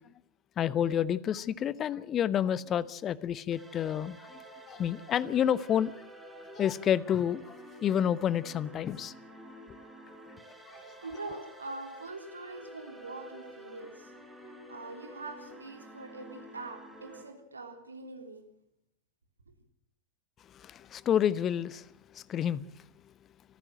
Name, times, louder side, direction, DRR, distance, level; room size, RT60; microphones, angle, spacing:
voice 1, 0.6-4.4 4.7-5.9 6.5-9.1 10.7-10.8 20.5-22.6, left 9 dB, 30° left, 0.9 m, -29 dB
sound 1, 3.5-17.2, equal, 5° right, 5.7 m, -50 dB
voice 2, 10.8-14.1 14.4-18.5, right 3 dB, 75° right, 3.4 m, -43 dB
27.0 x 15.0 x 7.6 m
figure-of-eight pair, 90°, 0 cm